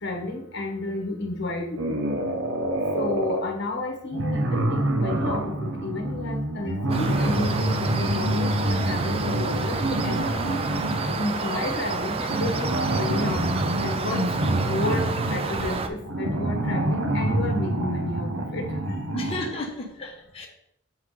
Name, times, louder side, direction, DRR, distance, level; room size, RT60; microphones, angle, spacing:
voice 1, 0.0-1.8 3.0-10.6 11.2-13.5 13.8-14.2 14.5-19.0, left 2 dB, 55° left, 2 dB, 1.1 m, -31 dB
sound 1, 1.8-3.5 4.1-11.3 12.2-19.6, right 1 dB, 75° right, 0.8 m, -27 dB
sound 2, 6.9-15.9, right 3 dB, 30° right, 0.4 m, -30 dB
voice 2, 19.1-20.5, left 2 dB, 30° left, -1 dB, 1.0 m, -33 dB
7.4 x 4.7 x 3.7 m, 0.72 s
head